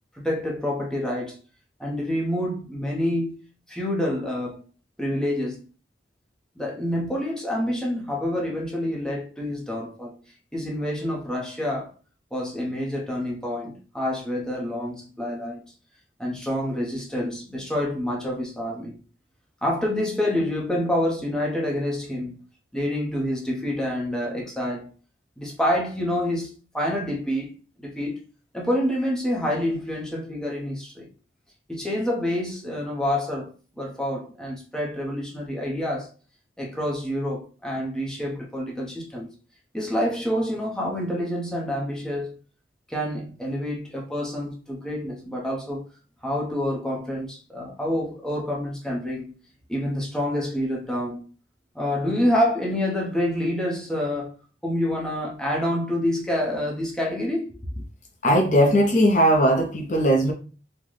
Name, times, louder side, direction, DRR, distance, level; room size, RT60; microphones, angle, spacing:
voice 1, 0.1-1.4 1.8-4.7 5.0-5.6 6.6-10.1 10.5-11.9 12.3-15.6 16.2-19.0 19.6-22.3 22.7-24.9 25.4-27.5 27.8-28.2 28.5-31.1 31.7-36.1 36.6-39.3 39.7-42.4 42.9-45.8 46.2-49.3 49.7-51.3 51.7-54.3 54.6-57.5, left 1 dB, 5° left, 0.7 m, -27 dB
voice 2, 58.2-60.3, equal, 40° left, 0.5 m, -19 dB
3.8 x 2.1 x 3.1 m
head